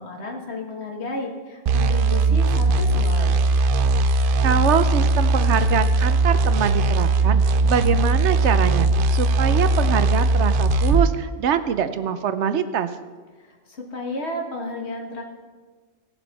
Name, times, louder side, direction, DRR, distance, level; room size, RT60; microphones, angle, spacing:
voice 1, 0.0-3.5 13.7-15.2, left 2 dB, 70° left, 1 dB, 1.9 m, -32 dB
sound 1, 1.7-11.1, right 2 dB, 60° right, 0.6 m, -19 dB
voice 2, 4.4-7.4 7.7-12.9, right 8 dB, 85° right, 11 dB, 1.0 m, -24 dB
17.5 x 7.1 x 4.1 m, 1.4 s
omnidirectional pair, 1.1 m